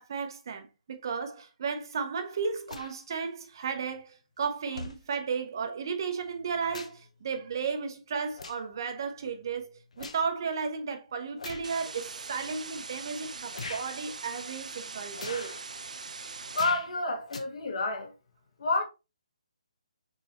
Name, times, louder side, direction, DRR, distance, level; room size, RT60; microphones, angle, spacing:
voice 1, 0.0-15.6, right 5 dB, 35° right, 0.6 m, -34 dB
sound 1, 2.7-2.9 4.0-4.1 4.7-5.0 6.2-7.1 7.5-7.7 8.3-8.7 9.2-10.3 11.4-11.7 12.4-12.5 13.5-13.9 15.1-15.6 16.5-16.9 17.3-17.4, left 4 dB, 65° left, 0.7 m, -42 dB
sound 2, 11.6-16.6, right 4 dB, 90° right, 0.5 m, -42 dB
voice 2, 16.5-18.1 18.6-18.8, left 3 dB, 50° left, 1.3 m, -29 dB
3.9 x 3.9 x 2.8 m
hypercardioid pair, 175°, 4 cm